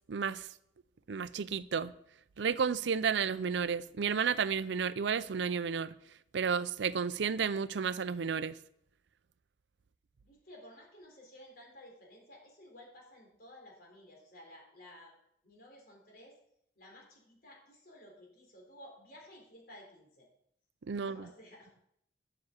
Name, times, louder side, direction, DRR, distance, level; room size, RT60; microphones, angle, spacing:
voice 1, 0.1-0.5 1.1-1.9 2.4-5.9 6.3-8.5 20.9-21.2, right 6 dB, 75° right, 0.5 m, -32 dB
voice 2, 10.2-15.1 15.4-16.3 16.8-20.3 20.9-21.7, left 1 dB, 55° left, 3.7 m, -55 dB
12.5 x 7.0 x 7.0 m
head